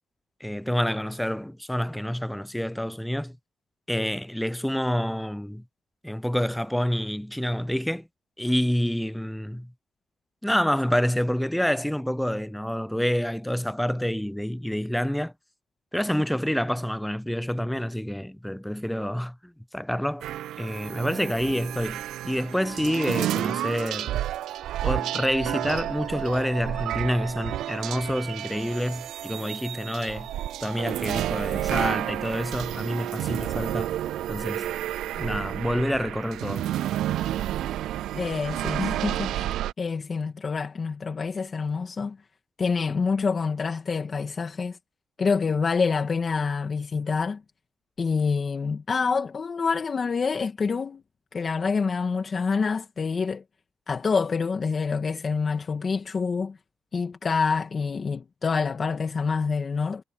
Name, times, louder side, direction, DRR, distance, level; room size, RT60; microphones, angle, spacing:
voice 1, 0.4-3.4 3.9-5.6 6.0-8.1 8.4-9.7 10.4-15.3 15.9-20.3 20.6-24.3 24.8-30.3 30.6-33.9 34.3-34.7 35.1-36.7, equal, 5° left, 0.5 m, -28 dB
sound 1, 20.2-39.7, right 12 dB, 90° right, 0.3 m, -30 dB
voice 2, 38.1-42.2 42.6-44.8 45.2-47.4 48.0-51.0 51.3-53.4 53.9-56.6 56.9-60.0, left 5 dB, 40° left, 1.9 m, -27 dB
cardioid pair, 90°, 0 cm